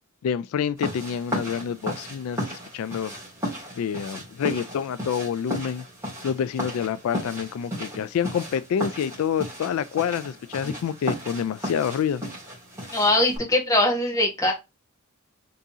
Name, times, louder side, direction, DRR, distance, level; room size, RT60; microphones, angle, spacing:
voice 1, 0.2-3.1 3.8-5.8 6.2-12.2, left 8 dB, 80° left, 0.3 m, -27 dB
sound 1, 0.8-13.4, equal, 15° right, 2.1 m, -35 dB
voice 2, 12.9-14.5, left 1 dB, 15° left, 1.5 m, -21 dB
3.9 x 3.6 x 2.7 m
head